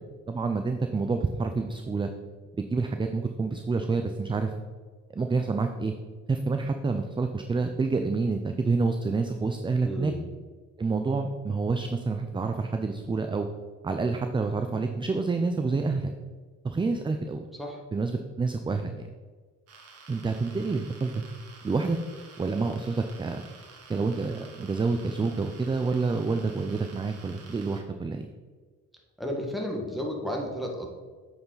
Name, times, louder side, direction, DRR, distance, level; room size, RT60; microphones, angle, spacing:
voice 1, 0.3-2.1 2.6-4.5 5.1-5.9 6.3-10.1 10.8-13.5 13.8-16.1 16.6-17.5 17.9-18.9 20.1-21.2 21.6-22.0 22.4-23.4 23.9-28.3, right 4 dB, 15° right, 6 dB, 0.4 m, -28 dB
voice 2, 9.8-10.2 17.5-17.8 29.2-30.9, equal, ahead, 0 dB, 1.4 m, -32 dB
sound 1, 19.7-27.8, right 4 dB, 55° right, 1.3 m, -50 dB
8.3 x 4.9 x 3.9 m, 1.5 s
cardioid pair, 90°, 30 cm